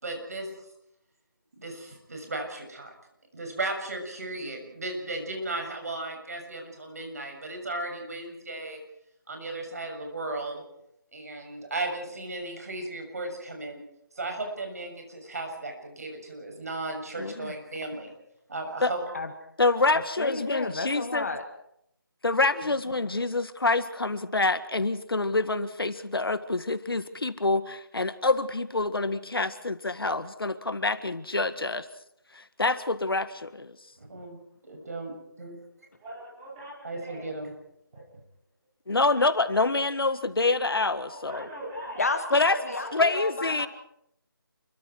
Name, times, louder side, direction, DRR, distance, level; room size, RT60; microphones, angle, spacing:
voice 1, 0.0-0.5 1.6-2.9 3.3-8.8 9.3-10.6 11.1-13.8 14.2-18.1 18.5-19.0 34.0-34.4 34.6-35.6 36.8-37.5, right 2 dB, 40° right, 3 dB, 6.7 m, -35 dB
voice 2, 17.2-17.5 18.8-18.9 19.6-21.3 22.2-31.9 32.3-33.7 38.9-41.5 42.3-42.6 42.9-43.7, left 3 dB, 80° left, 11 dB, 1.8 m, -26 dB
voice 3, 19.9-21.5 22.6-23.1 42.0-43.7, left 3 dB, 40° left, 7 dB, 1.9 m, -32 dB
voice 4, 36.0-37.3 37.9-38.0 41.1-42.0 42.3-43.7, equal, 10° right, -6 dB, 4.7 m, -42 dB
29.0 x 23.5 x 4.7 m, 0.77 s
figure-of-eight pair, 175°, 12 cm